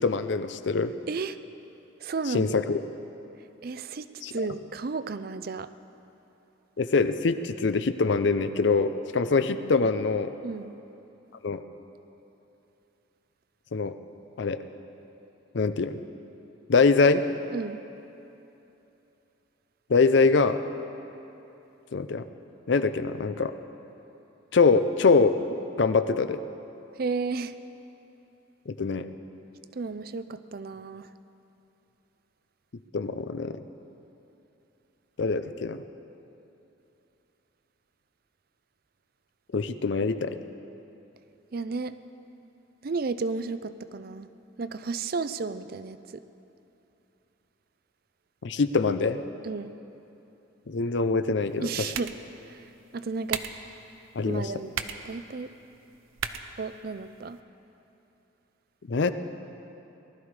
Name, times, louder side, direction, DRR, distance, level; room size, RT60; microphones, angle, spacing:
voice 1, 0.0-0.9 2.3-2.8 4.2-4.5 6.8-10.3 11.4-11.6 13.7-13.9 14.4-14.6 15.5-16.0 16.7-17.2 19.9-20.6 21.9-22.2 22.7-23.5 24.5-25.3 25.8-26.4 28.7-29.1 32.9-33.6 35.2-35.8 39.5-40.4 48.4-49.2 50.7-51.9 54.2-54.5 58.9-59.1, left 4 dB, 60° left, 11 dB, 0.5 m, -24 dB
voice 2, 2.0-2.6 3.6-5.7 10.4-10.7 17.5-17.8 27.0-27.5 29.8-31.1 41.5-41.9 42.8-44.3 44.6-46.2 49.4-49.7 51.6-52.1 52.9-53.4 54.3-54.7 55.1-55.5 56.6-57.4, right 4 dB, 45° right, 13 dB, 0.4 m, -33 dB
sound 1, 51.4-57.4, right 7 dB, 85° right, 0.6 m, -40 dB
19.5 x 13.0 x 4.8 m, 2.9 s
head